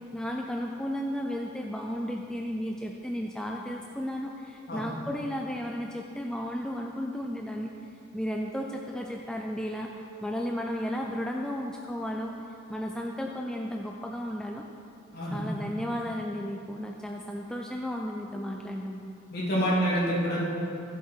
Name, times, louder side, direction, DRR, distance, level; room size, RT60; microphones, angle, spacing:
voice 1, 0.1-7.7 8.1-12.3 12.7-14.6 15.3-19.0, equal, 5° left, 0 dB, 0.4 m, -34 dB
voice 2, 19.3-20.4, equal, 50° left, -7 dB, 3.1 m, -27 dB
15.0 x 7.5 x 4.5 m, 2.6 s
head